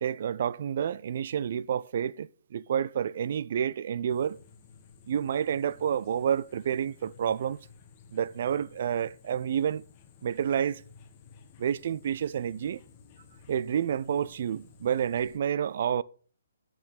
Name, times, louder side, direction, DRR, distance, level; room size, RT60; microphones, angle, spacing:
voice 1, 0.0-4.4 5.1-7.6 8.1-9.8 10.2-10.8 11.6-12.8 13.5-16.0, right 8 dB, 45° right, 0.4 m, -29 dB
sound 1, 4.1-15.4, left 6 dB, 25° left, 1.3 m, -55 dB
10.0 x 6.2 x 6.9 m
figure-of-eight pair, 130°, 0 cm